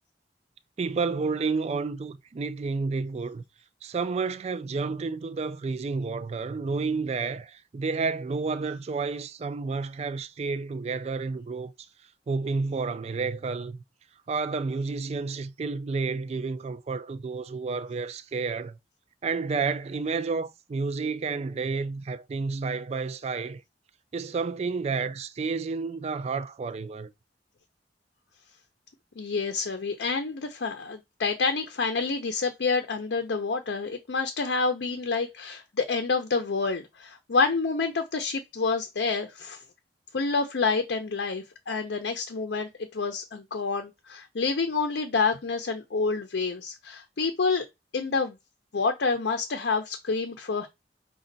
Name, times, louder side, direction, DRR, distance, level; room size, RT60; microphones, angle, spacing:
voice 1, 0.8-3.4 3.8-11.7 12.3-13.8 14.3-18.8 19.2-23.6 24.1-27.1, right 4 dB, 35° right, 0.3 m, -30 dB
voice 2, 29.2-39.6 40.1-47.6 47.9-48.4 48.7-50.7, left 4 dB, 75° left, 0.6 m, -28 dB
5.2 x 2.3 x 3.9 m
head